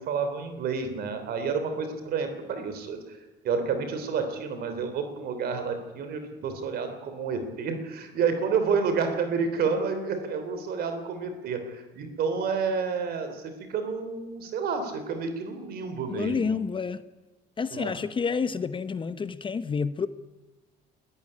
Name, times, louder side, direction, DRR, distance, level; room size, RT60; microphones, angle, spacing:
voice 1, 0.0-3.0 3.4-16.5 17.7-17.9, right 5 dB, 65° right, 8 dB, 3.3 m, -29 dB
voice 2, 16.2-17.0 17.6-20.1, left 5 dB, 30° left, 13 dB, 0.9 m, -29 dB
20.0 x 13.5 x 9.8 m, 1.2 s
cardioid pair, 110°, 17 cm